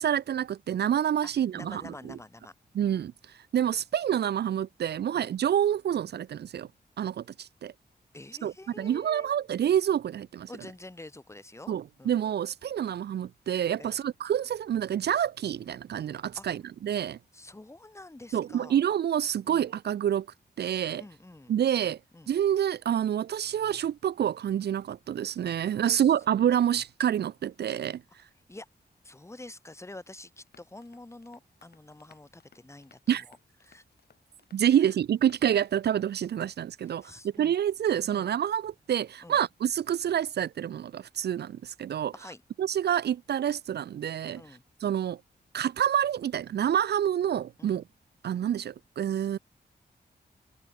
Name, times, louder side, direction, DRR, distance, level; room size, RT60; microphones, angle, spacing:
voice 1, 0.0-2.2 2.7-3.1 3.5-6.7 7.0-7.7 8.4-10.5 11.7-17.2 18.3-20.3 20.6-21.0 21.5-22.0 22.3-28.0 33.1-33.2 34.5-42.1 42.6-44.4 44.8-45.2 45.5-47.8 48.2-49.4, right 10 dB, 75° right, 0.4 m, -27 dB
voice 2, 1.2-2.5 2.8-3.0 5.1-5.3 8.1-9.3 10.5-12.2 13.8-14.0 16.4-16.5 17.3-18.8 19.4-19.7 20.9-21.6 22.1-22.3 25.7-26.1 28.5-28.7 29.0-33.4 33.6-33.8 34.8-34.9 36.8-37.5 38.1-38.3 39.2-39.4 42.1-42.4 44.4-44.6 47.6-47.8, left 2 dB, 15° left, 3.0 m, -47 dB
sound 1, 30.5-36.0, left 6 dB, 70° left, 4.8 m, -63 dB
wide cardioid pair, 150°, 17 cm